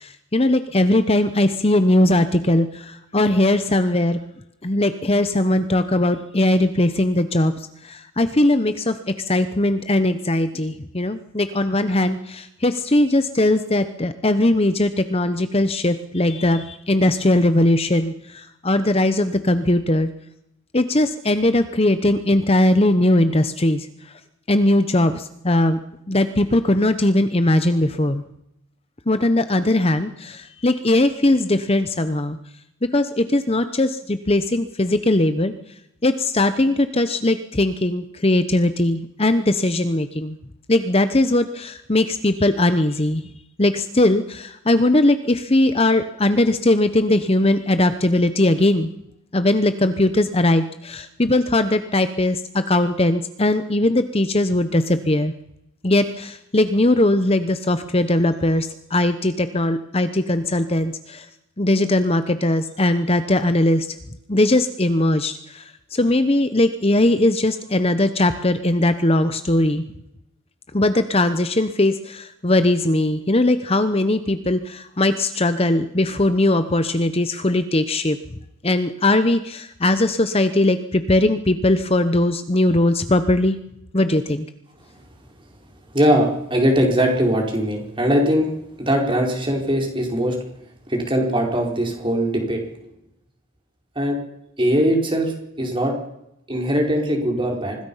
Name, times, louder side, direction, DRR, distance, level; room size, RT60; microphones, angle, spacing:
voice 1, 0.0-4.2 4.6-7.5 7.8-20.1 20.7-23.9 24.5-25.8 26.1-28.2 29.1-32.4 32.9-35.5 36.0-40.4 40.7-43.2 43.6-48.9 49.3-55.3 55.8-61.3 61.6-63.9 64.3-65.6 65.9-69.8 70.7-78.2 78.6-83.6 83.9-84.5, left 1 dB, 25° left, 10 dB, 0.9 m, -19 dB
voice 2, 85.9-88.5 88.8-90.3 90.9-92.6 93.9-94.2 94.6-95.9 96.5-97.8, equal, 20° right, 1 dB, 4.9 m, -20 dB
25.5 x 20.0 x 5.7 m, 0.81 s
head